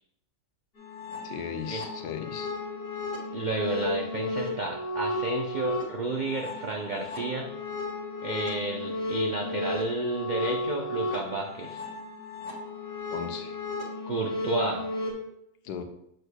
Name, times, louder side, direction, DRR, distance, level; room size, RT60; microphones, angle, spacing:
sound 1, 0.8-15.1, left 2 dB, 70° left, 1.9 m, -34 dB
voice 1, 1.2-2.6 13.1-13.6 15.6-15.8, left 7 dB, 90° left, 6 dB, 1.3 m, -37 dB
voice 2, 3.3-7.5 8.2-11.8 14.1-14.8, right 2 dB, 75° right, 1 dB, 0.4 m, -31 dB
7.6 x 6.3 x 2.2 m, 0.77 s
omnidirectional pair, 1.6 m